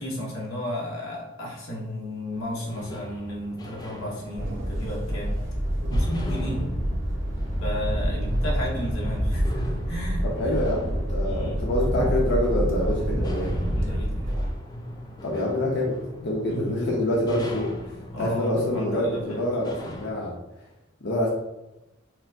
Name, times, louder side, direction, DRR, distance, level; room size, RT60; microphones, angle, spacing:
voice 1, 0.0-5.4 5.9-6.7 7.6-10.6 11.2-11.6 13.7-14.3 16.5-16.7 18.1-19.4, left 1 dB, 90° left, -2 dB, 0.9 m, -33 dB
sound 1, 2.3-20.1, left 1 dB, 20° left, 0.3 m, -41 dB
sound 2, 4.3-14.5, equal, 75° right, 0.8 m, -27 dB
voice 2, 10.4-13.5 15.2-20.3 21.0-21.3, left 1 dB, 60° left, -4 dB, 0.7 m, -26 dB
4.3 x 2.0 x 2.6 m, 0.95 s
head